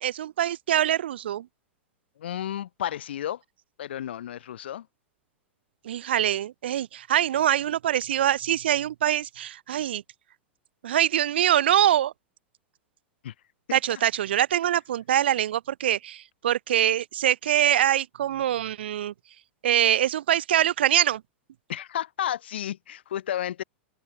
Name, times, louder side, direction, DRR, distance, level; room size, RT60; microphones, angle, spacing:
voice 1, 0.0-1.5 5.8-10.0 10.8-12.1 13.7-19.1 19.6-21.2, right 11 dB, 65° right, 0.9 m, -24 dB
voice 2, 2.2-3.4 3.8-4.9 13.2-13.3 13.7-13.8 21.7-23.6, left 11 dB, 65° left, 3.7 m, -32 dB
open air
figure-of-eight pair, 95°, 6 cm